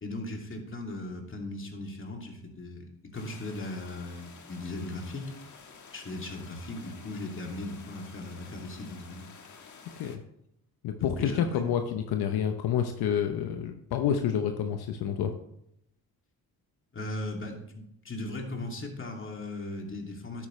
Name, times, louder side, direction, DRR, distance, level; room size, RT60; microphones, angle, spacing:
voice 1, 0.0-5.3 5.9-9.2 11.0-11.7 16.9-20.5, left 2 dB, 30° left, 1 dB, 2.5 m, -38 dB
sound 1, 3.1-10.2, left 5 dB, 50° left, 1.4 m, -51 dB
voice 2, 10.8-15.3, left 8 dB, 75° left, 6 dB, 0.8 m, -28 dB
10.5 x 8.7 x 3.2 m, 0.77 s
supercardioid pair, 65°, 38 cm